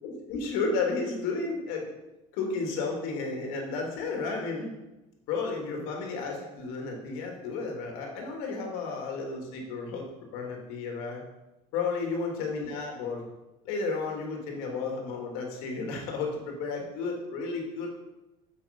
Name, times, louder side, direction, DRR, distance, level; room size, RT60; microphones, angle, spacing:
voice 1, 0.0-1.8 2.3-4.7 5.3-10.0 10.3-11.2 11.7-13.2 13.6-17.9, left 4 dB, 75° left, 1 dB, 2.6 m, -32 dB
8.9 x 7.3 x 5.2 m, 1.0 s
cardioid pair, 170°, 15 cm